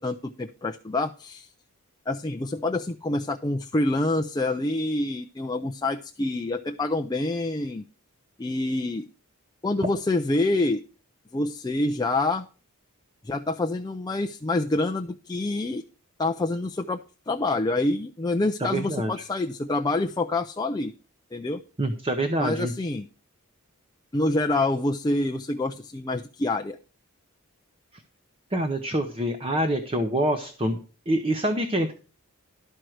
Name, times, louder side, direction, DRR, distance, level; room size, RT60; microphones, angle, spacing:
voice 1, 0.0-1.5 2.1-7.8 8.4-9.1 9.6-10.8 11.3-12.5 13.2-15.8 16.2-17.0 17.3-20.9 21.3-21.6 22.4-23.1 24.1-26.8, left 2 dB, 20° left, 5 dB, 0.4 m, -27 dB
voice 2, 18.6-19.1 21.8-22.7 28.5-30.8 31.1-31.9, right 1 dB, 25° right, 7 dB, 0.8 m, -26 dB
12.5 x 4.5 x 6.3 m, 0.37 s
head